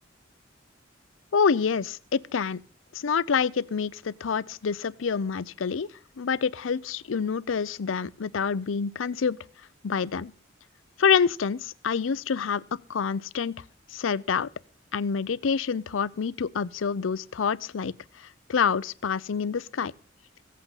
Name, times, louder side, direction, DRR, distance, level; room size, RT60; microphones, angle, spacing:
voice 1, 1.3-2.6 2.9-5.9 6.2-9.4 9.8-10.3 11.0-13.5 13.9-14.5 14.9-19.9, left 6 dB, 85° left, 0.5 m, -27 dB
16.0 x 8.4 x 5.6 m
head